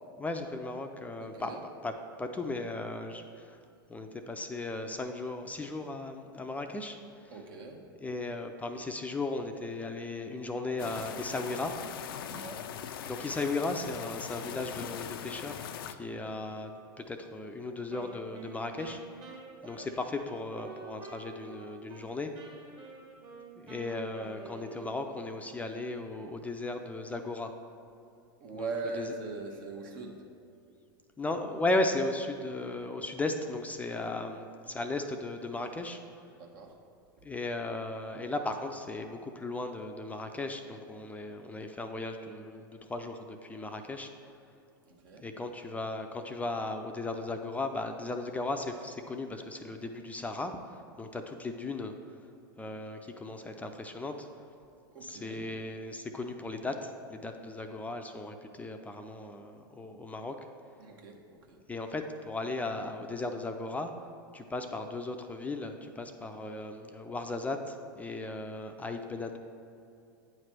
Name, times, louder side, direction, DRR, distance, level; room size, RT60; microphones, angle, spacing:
voice 1, 0.2-1.6 1.8-1.9 2.2-3.6 3.9-7.5 8.0-11.7 13.1-15.6 15.9-19.0 19.6-22.3 23.6-27.5 28.5-29.1 31.2-36.0 37.2-44.1 45.2-50.6 51.0-51.9 52.6-54.3 55.0-60.4 61.7-63.9 64.3-69.4, left 2 dB, 10° left, 5 dB, 0.4 m, -36 dB
voice 2, 1.2-1.6 7.3-7.8 12.3-12.6 16.1-16.4 19.6-19.9 28.4-30.2 36.3-36.8 44.8-45.3 54.9-55.4 60.8-61.2 61.5-61.6, right 3 dB, 65° right, 1 dB, 1.1 m, -41 dB
sound 1, 10.8-15.9, left 8 dB, 75° left, 0.4 m, -41 dB
Wind instrument woodwind instrument, 17.9-22.1 22.3-25.3, right 3 dB, 40° right, 1.3 m, -49 dB
8.9 x 3.2 x 5.9 m, 2.7 s
hypercardioid pair, 105°, 12 cm